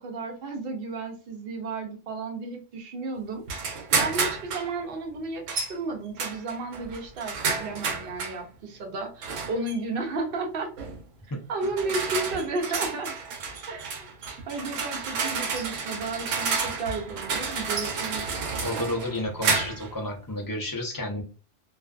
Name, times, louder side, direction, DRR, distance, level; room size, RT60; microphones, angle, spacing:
voice 1, 0.0-3.4 3.9-10.7 11.5-13.1 13.7-14.1 14.5-18.3, right 3 dB, 55° right, 4 dB, 0.7 m, -33 dB
sound 1, 3.5-4.7 5.5-5.7 6.2-8.4 9.2-9.7 10.8-11.0 11.6-19.9, right 5 dB, 80° right, 1.0 m, -30 dB
voice 2, 18.6-21.2, left 1 dB, 35° left, -1 dB, 0.3 m, -31 dB
2.5 x 2.3 x 2.3 m, 0.35 s
omnidirectional pair, 1.3 m